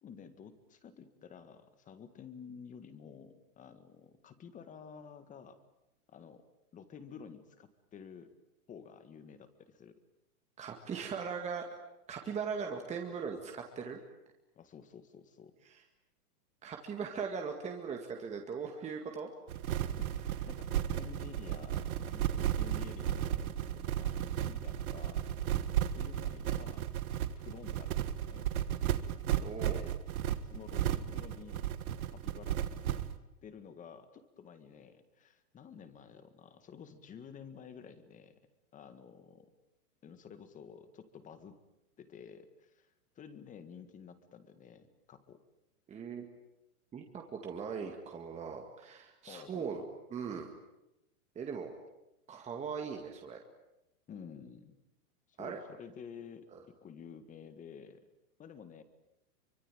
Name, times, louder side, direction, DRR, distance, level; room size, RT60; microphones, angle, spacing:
voice 1, 0.0-5.6 6.1-6.4 6.7-8.3 8.7-9.9 14.6-15.5 20.0-25.2 25.9-26.8 27.3-28.5 29.6-29.9 30.5-31.7 32.1-33.0 33.4-38.4 38.7-39.5 40.0-41.6 42.0-45.4 49.3-49.9 54.1-54.8 55.3-56.5 56.8-58.0 58.4-58.8, left 7 dB, 15° left, 11 dB, 1.8 m, -51 dB
voice 2, 10.6-11.6 12.1-14.0 15.7-15.8 16.6-19.3 29.4-29.8 45.9-46.3 46.9-49.8 50.1-50.5 51.4-51.7 52.3-53.4 55.4-55.6 56.5-56.6, right 6 dB, 15° right, 3 dB, 2.1 m, -39 dB
sound 1, 19.5-33.2, right 11 dB, 65° right, 1.8 m, -34 dB
25.0 x 24.0 x 9.1 m, 0.88 s
hypercardioid pair, 150°, 45 cm